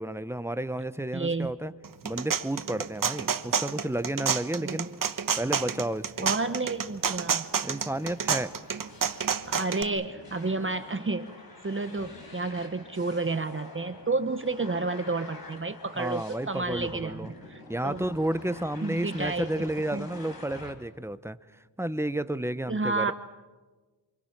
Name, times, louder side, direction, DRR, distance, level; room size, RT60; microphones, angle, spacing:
voice 1, 0.0-1.7 2.0-4.9 5.4-6.3 7.6-8.5 15.9-17.3 17.7-21.4 21.8-23.1, right 1 dB, 5° right, 13 dB, 0.7 m, -31 dB
voice 2, 1.1-1.5 4.6-5.0 6.2-7.5 9.5-11.3 11.6-18.0 18.8-19.5 19.9-20.1 22.7-23.1, right 3 dB, 30° right, 9 dB, 1.1 m, -31 dB
sound 1, 1.8-9.8, right 7 dB, 50° right, 1.0 m, -29 dB
sound 2, 4.0-20.7, left 2 dB, 60° left, 4.2 m, -48 dB
28.5 x 25.0 x 5.9 m, 1.3 s
wide cardioid pair, 120°, 41 cm